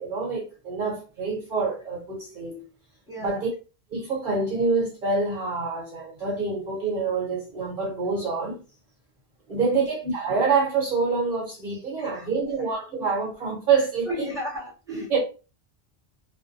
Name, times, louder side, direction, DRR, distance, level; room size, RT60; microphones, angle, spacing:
voice 1, 0.0-2.6 3.2-3.5 3.9-8.6 9.5-14.3 14.9-15.2, right 4 dB, 55° right, 1.1 m, -26 dB
voice 2, 3.1-3.5 9.5-9.9 12.0-12.5 14.0-15.2, left 1 dB, 5° right, 0.9 m, -35 dB
2.5 x 2.2 x 2.5 m
omnidirectional pair, 1.1 m